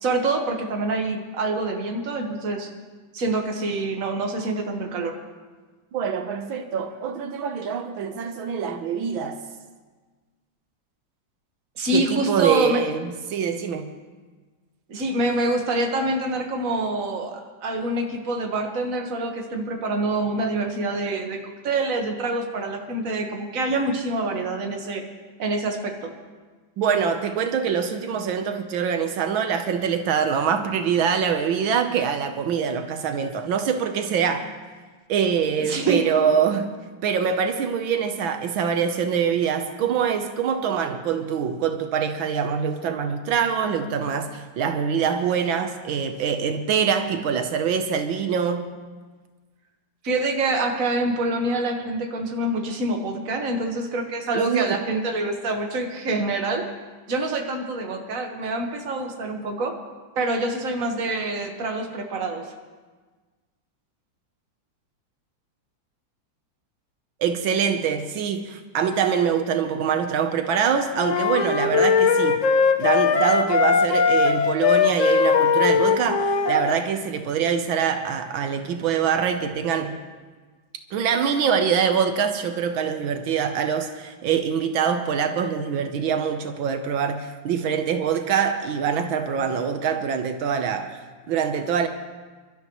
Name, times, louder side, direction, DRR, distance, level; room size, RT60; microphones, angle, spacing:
voice 1, 0.0-2.7 3.1-5.2 11.8-12.8 14.9-25.0 25.4-26.1 35.6-36.1 50.0-56.6 57.1-59.8 60.2-62.5, right 2 dB, 45° right, 3 dB, 1.8 m, -26 dB
voice 2, 5.9-9.4 11.9-13.9 26.8-34.5 35.1-36.7 37.0-48.7 54.3-54.8 67.2-72.4 72.8-80.0 80.9-90.9 91.3-91.9, right 7 dB, 85° right, 6 dB, 1.7 m, -24 dB
sound 1, 71.0-76.8, left 5 dB, 55° left, 1.0 m, -20 dB
27.5 x 13.0 x 3.1 m, 1.4 s
omnidirectional pair, 2.1 m